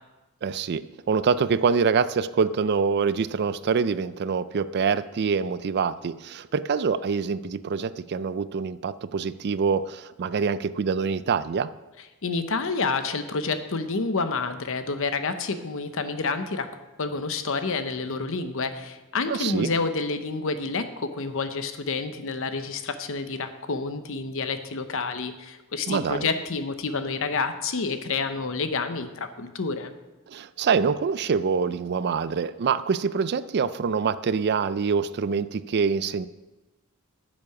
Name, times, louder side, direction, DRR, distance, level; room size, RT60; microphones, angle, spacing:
voice 1, 0.4-11.7 19.3-19.7 25.9-26.3 30.3-36.3, right 5 dB, 50° right, 15 dB, 0.4 m, -25 dB
voice 2, 12.2-16.7 17.0-29.9, left 4 dB, 65° left, 9 dB, 0.9 m, -29 dB
9.6 x 7.5 x 5.8 m, 1.1 s
head